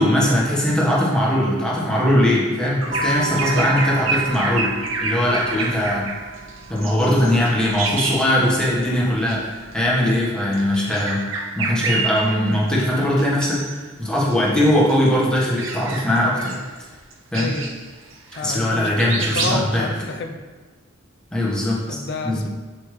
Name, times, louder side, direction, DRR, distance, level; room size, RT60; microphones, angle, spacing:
voice 1, 0.0-4.7 5.0-6.1 6.7-11.2 11.5-16.5 17.3-17.5 18.3-19.9 21.3-22.0 22.2-22.4, left 1 dB, 5° left, -6 dB, 1.3 m, -20 dB
Bird vocalization bird call bird song, 2.8-8.9 9.2-9.4 10.4-12.7 13.2-13.8 14.2-18.7 19.0-19.6, right 3 dB, 75° right, 0.7 m, -28 dB
sound 1, 2.9-9.9, right 4 dB, 45° right, 1.1 m, -34 dB
voice 2, 3.3-4.0 17.3-17.7 18.3-19.0 19.3-20.4 21.9-22.5, left 3 dB, 55° left, 4 dB, 0.5 m, -29 dB
6.6 x 5.4 x 3.2 m, 1.4 s
head